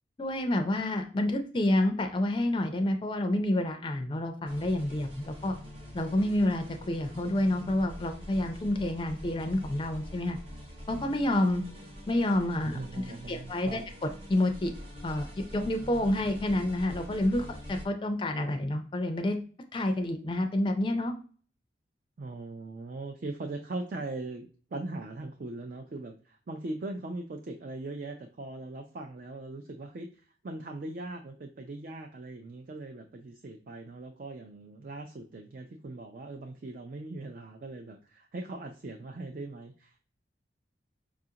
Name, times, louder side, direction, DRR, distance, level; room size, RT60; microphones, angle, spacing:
voice 1, 0.2-5.5 5.9-10.4 10.9-11.6 12.1-12.8 13.3-14.7 15.0-19.4 19.7-21.1, left 1 dB, 25° left, 6 dB, 0.4 m, -28 dB
sound 1, 4.5-17.9, equal, 30° right, 0.8 m, -45 dB
voice 2, 12.6-13.8 22.2-40.0, right 2 dB, 50° right, 4 dB, 0.4 m, -40 dB
4.9 x 2.5 x 2.7 m, 0.42 s
head